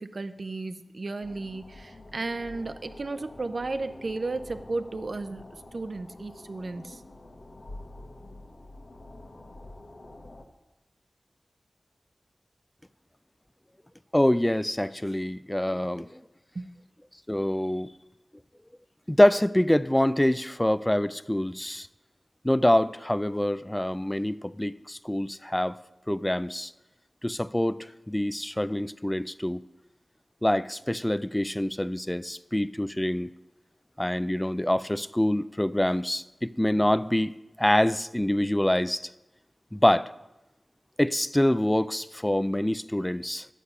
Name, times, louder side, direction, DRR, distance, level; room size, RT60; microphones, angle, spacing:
voice 1, 0.0-7.0 16.5-16.7, right 3 dB, 60° right, 11 dB, 0.6 m, -34 dB
sound 1, 1.2-10.4, left 2 dB, 75° left, 1.2 m, -47 dB
voice 2, 14.1-16.2 17.3-17.9 19.1-21.9 22.4-25.8 26.1-26.7 27.2-29.6 30.4-33.3 34.0-37.3 37.6-39.1 39.7-40.1 41.0-43.5, left 1 dB, 10° left, 15 dB, 0.3 m, -25 dB
11.5 x 8.2 x 5.7 m, 1.0 s
wide cardioid pair, 90°, 0 cm